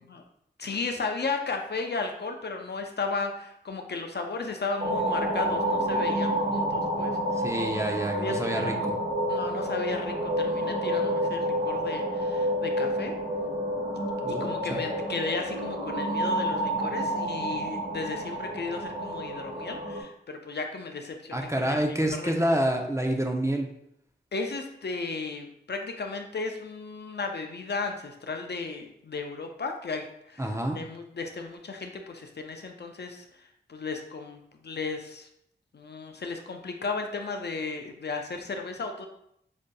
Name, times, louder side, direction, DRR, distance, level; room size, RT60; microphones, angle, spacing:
voice 1, 0.6-7.4 8.1-8.8 9.3-13.1 14.4-21.8 22.2-22.3 24.3-30.4 30.7-33.3 33.7-35.3 35.7-39.1, left 4 dB, 60° left, 4 dB, 0.5 m, -34 dB
sound 1, 4.8-20.0, equal, 65° right, 1.2 m, -29 dB
voice 2, 7.3-9.0 14.2-14.8 21.3-23.7 30.4-30.8, right 1 dB, 15° right, 2 dB, 0.6 m, -28 dB
5.1 x 2.5 x 2.3 m, 0.74 s
cardioid pair, 40°, 20 cm